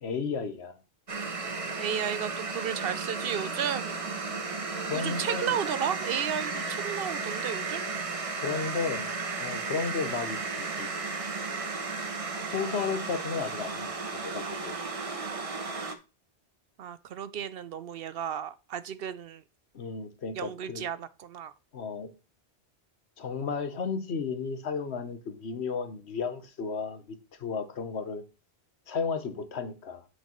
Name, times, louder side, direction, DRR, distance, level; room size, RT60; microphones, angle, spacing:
voice 1, 0.0-0.8 1.7-1.8 4.8-5.6 8.4-9.1 9.4-10.9 12.5-14.7 19.7-20.8 21.7-22.1 23.2-27.0 27.4-28.2 28.9-30.1, left 5 dB, 75° left, 1.3 m, -33 dB
sound 1, 1.1-15.9, right 4 dB, 35° right, 0.9 m, -34 dB
voice 2, 1.8-4.1 4.9-7.9 16.8-19.4 20.3-21.5, right 8 dB, 65° right, 0.7 m, -33 dB
8.2 x 6.4 x 3.1 m
omnidirectional pair, 1.1 m